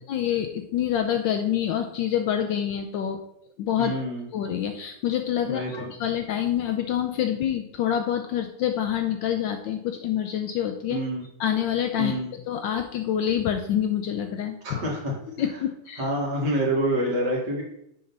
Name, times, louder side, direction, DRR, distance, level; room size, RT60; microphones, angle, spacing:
voice 1, 0.1-3.2 3.6-3.9 4.3-11.0 11.4-12.2 12.5-14.8 15.4-16.1, left 10 dB, 75° left, 5 dB, 1.2 m, -26 dB
voice 2, 3.8-4.3 5.5-5.9 10.9-11.2 12.0-12.3 14.6-15.1 16.0-17.6, right 1 dB, 50° right, -3 dB, 2.4 m, -27 dB
6.7 x 4.0 x 5.3 m, 0.76 s
omnidirectional pair, 2.3 m